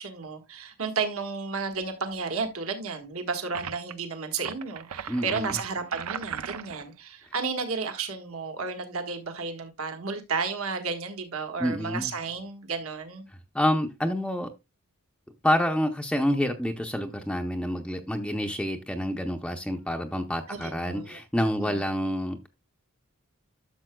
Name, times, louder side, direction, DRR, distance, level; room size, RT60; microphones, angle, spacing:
voice 1, 0.0-13.3 20.5-21.2 21.6-21.8, right 4 dB, 70° right, 1.5 m, -32 dB
sound 1, 3.5-3.9 4.4-6.9, right 8 dB, 90° right, 0.6 m, -37 dB
voice 2, 5.1-5.5 11.6-12.1 13.5-14.5 15.4-22.5, equal, 5° left, 0.6 m, -28 dB
12.0 x 6.8 x 2.2 m
head